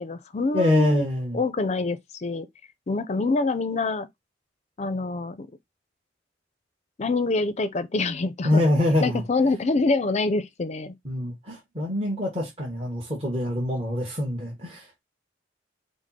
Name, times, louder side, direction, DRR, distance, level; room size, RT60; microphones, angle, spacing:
voice 1, 0.0-1.1 1.3-2.5 2.9-4.1 4.8-5.5 7.0-8.7 9.0-11.0, left 3 dB, 35° left, 0.5 m, -26 dB
voice 2, 0.5-1.4 8.4-9.2 11.0-15.0, left 1 dB, 30° right, 1.1 m, -25 dB
5.1 x 2.0 x 4.0 m
head